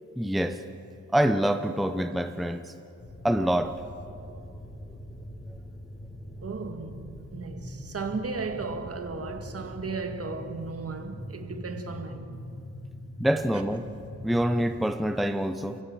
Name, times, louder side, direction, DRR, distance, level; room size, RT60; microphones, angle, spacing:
voice 1, 0.2-0.6 1.1-2.7 3.2-3.8 13.2-13.9 14.2-15.8, equal, ahead, 0.7 m, -26 dB
sound 1, 3.0-14.7, left 1 dB, 30° left, 4.1 m, -42 dB
voice 2, 6.4-12.4 13.5-13.6, right 4 dB, 50° right, 1.8 m, -35 dB
29.0 x 16.0 x 7.7 m
wide cardioid pair, 160°, 29 cm